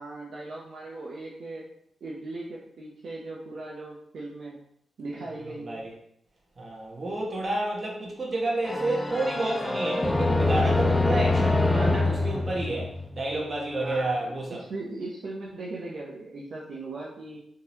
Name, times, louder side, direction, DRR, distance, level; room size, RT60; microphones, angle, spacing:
voice 1, 0.0-1.7 2.0-4.6 5.0-5.8 13.8-17.4, right 2 dB, 70° right, -4 dB, 0.6 m, -38 dB
voice 2, 6.6-12.9 13.1-14.6, right 2 dB, 40° right, -2 dB, 1.1 m, -30 dB
sound 1, 8.6-13.4, left 2 dB, 25° left, 0.4 m, -25 dB
3.7 x 2.9 x 2.7 m, 0.71 s
cardioid pair, 85°, 0 cm